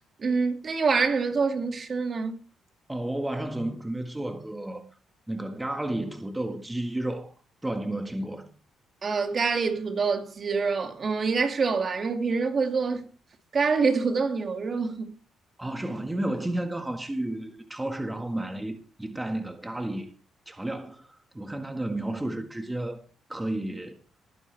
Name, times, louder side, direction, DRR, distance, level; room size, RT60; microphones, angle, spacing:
voice 1, 0.2-2.4 9.0-13.1 13.5-15.1, right 4 dB, 45° right, 2.3 m, -26 dB
voice 2, 2.9-4.9 5.3-7.3 7.6-8.5 15.6-20.1 20.5-23.0 23.3-24.0, right 1 dB, 10° right, 1.6 m, -32 dB
20.0 x 9.9 x 3.4 m
cardioid pair, 90°, 0 cm